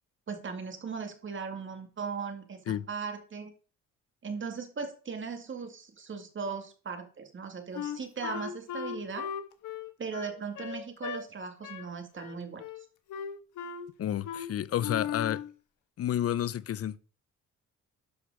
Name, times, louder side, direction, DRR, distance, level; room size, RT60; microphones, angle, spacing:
voice 1, 0.3-3.5 4.2-9.3 10.0-12.6, right 5 dB, 40° right, 2.2 m, -38 dB
Wind instrument woodwind instrument, 7.7-11.2 11.6-11.9 12.2-12.8 13.1-13.9 14.2-14.5 14.8-15.5, left 8 dB, 80° left, 1.2 m, -37 dB
voice 2, 14.0-15.4 16.0-17.0, left 11 dB, 50° left, 0.6 m, -30 dB
11.5 x 4.9 x 4.9 m
cardioid pair, 90°, 30 cm